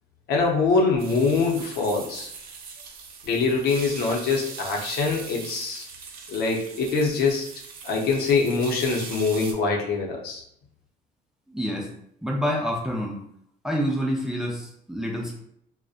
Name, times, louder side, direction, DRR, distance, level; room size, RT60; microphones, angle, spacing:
voice 1, 0.3-2.3 3.2-5.9 6.3-7.5 7.8-10.4, left 4 dB, 70° left, 0 dB, 0.6 m, -24 dB
sound 1, 1.0-9.5, right 5 dB, 60° right, 0.5 m, -41 dB
voice 2, 11.5-11.9 12.2-13.2 13.6-15.3, equal, 5° right, -1 dB, 0.4 m, -27 dB
2.6 x 2.1 x 2.4 m, 0.69 s
cardioid pair, 110°, 17 cm